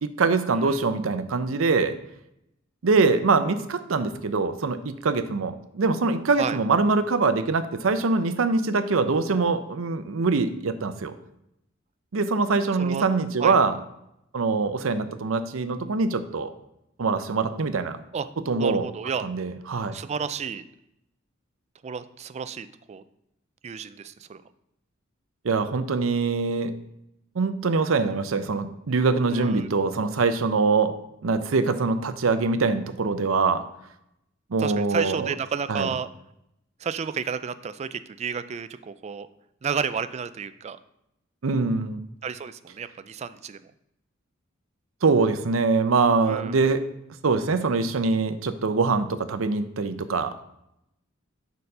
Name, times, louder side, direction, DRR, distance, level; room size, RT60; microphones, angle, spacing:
voice 1, 0.0-1.9 2.8-11.1 12.1-13.7 14.3-16.5 17.0-18.0 18.5-18.9 19.2-19.9 25.4-26.7 27.4-30.9 31.2-33.6 34.5-35.3 35.7-35.9 41.4-42.0 45.0-46.8 47.2-50.3, right 4 dB, 85° right, 10 dB, 0.6 m, -23 dB
voice 2, 18.6-19.2 19.9-20.7 21.8-23.0 23.6-24.4 29.3-29.7 34.6-36.1 36.8-39.3 39.6-40.8 42.2-43.6 46.3-46.6, right 6 dB, 35° right, 13 dB, 0.3 m, -31 dB
6.6 x 4.0 x 5.4 m, 0.82 s
head